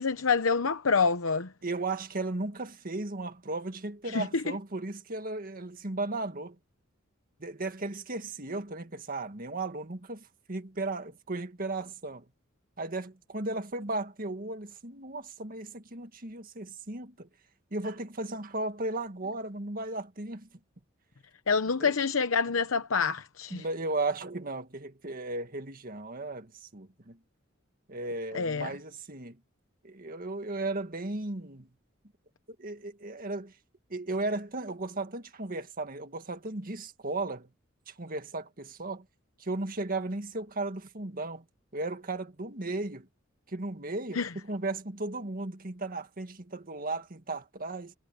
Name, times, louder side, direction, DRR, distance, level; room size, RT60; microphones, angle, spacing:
voice 1, 0.0-1.5 4.1-4.4 21.5-23.6 28.3-28.7 44.1-44.3, left 5 dB, 90° left, 0.9 m, -27 dB
voice 2, 1.6-6.6 7.4-12.2 12.8-17.3 17.7-20.5 21.8-21.9 23.5-27.2 27.9-29.4 29.8-31.7 32.6-33.5 33.9-37.5 37.9-39.1 39.4-41.4 41.7-43.1 43.5-47.9, right 2 dB, 45° right, 1.9 m, -35 dB
head